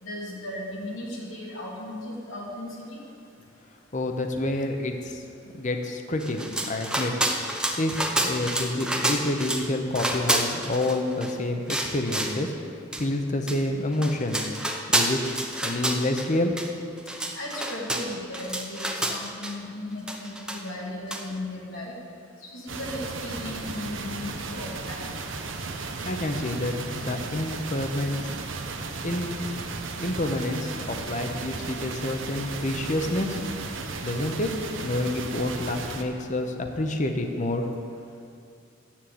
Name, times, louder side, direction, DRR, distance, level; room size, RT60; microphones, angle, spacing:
voice 1, 0.0-2.8 17.3-21.9 22.4-25.2, left 1 dB, 90° left, -4 dB, 2.5 m, -36 dB
voice 2, 3.9-5.2 5.5-6.4 6.7-7.1 7.8-12.5 13.0-14.5 14.9-15.2 15.6-16.6 26.0-28.3 29.0-29.4 30.0-33.4 34.0-34.5 34.8-37.7, left 1 dB, 40° left, 5 dB, 0.8 m, -28 dB
sound 1, 6.2-9.7 9.9-11.3 11.7-12.4 12.9-13.0 13.5-13.6 13.9-16.3 16.6-16.7 17.0-19.5 20.1-20.8 21.1-21.2, right 1 dB, 5° right, 0.7 m, -28 dB
sound 2, 22.7-36.0, right 3 dB, 75° right, 0.9 m, -35 dB
7.7 x 7.4 x 8.6 m, 2.4 s
head